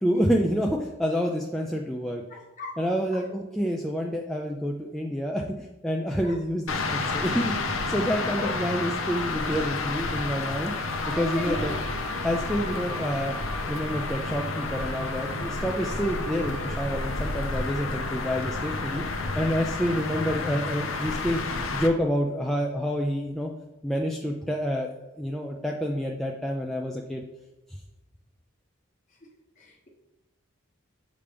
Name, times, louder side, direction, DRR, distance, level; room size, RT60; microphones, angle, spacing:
voice 1, 0.0-2.2 2.8-5.4 5.8-10.7 11.2-12.0 12.2-13.3 13.7-19.0 19.4-21.4 21.7-23.5 23.8-24.9 25.2-27.2, equal, ahead, -1 dB, 0.3 m, -28 dB
voice 2, 2.3-2.8 6.2-6.3 8.4-8.5 11.0-11.9 29.2-29.3 29.6-29.9, left 1 dB, 35° left, -1 dB, 1.1 m, -37 dB
sound 1, 6.7-21.9, left 3 dB, 75° left, 0.7 m, -30 dB
Wind instrument woodwind instrument, 10.6-16.9, right 2 dB, 80° right, 2.2 m, -43 dB
6.9 x 5.1 x 3.4 m, 1.0 s
head